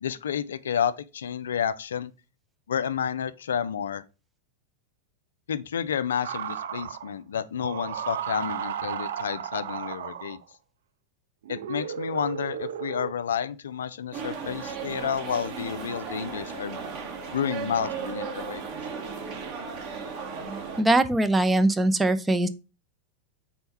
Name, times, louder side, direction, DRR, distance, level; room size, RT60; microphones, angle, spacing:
voice 1, 0.0-2.1 2.7-4.0 5.5-10.4 11.5-16.8 17.3-18.6, left 8 dB, 65° left, 0.4 m, -30 dB
sound 1, 6.2-7.1 7.6-10.5 11.4-13.1, right 9 dB, 60° right, 0.5 m, -34 dB
sound 2, 14.1-20.8, right 5 dB, 40° right, 1.3 m, -35 dB
voice 2, 20.8-22.5, right 2 dB, 10° right, 0.6 m, -21 dB
4.5 x 4.2 x 5.4 m
figure-of-eight pair, 90°, 0 cm